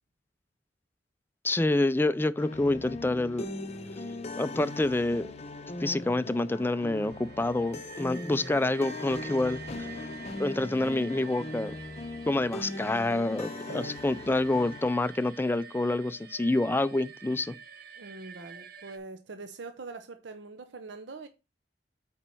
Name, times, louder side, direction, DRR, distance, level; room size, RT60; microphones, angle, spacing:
voice 1, 1.4-3.5 4.4-5.3 5.8-9.6 10.4-11.7 12.3-17.6, left 2 dB, 10° left, 0.4 m, -27 dB
sound 1, 2.4-14.8, left 2 dB, 35° left, 0.7 m, -39 dB
sound 2, 6.7-19.0, right 7 dB, 55° right, 1.0 m, -49 dB
voice 2, 13.7-14.2 18.0-21.3, right 3 dB, 75° right, 0.7 m, -43 dB
8.4 x 4.5 x 4.4 m
head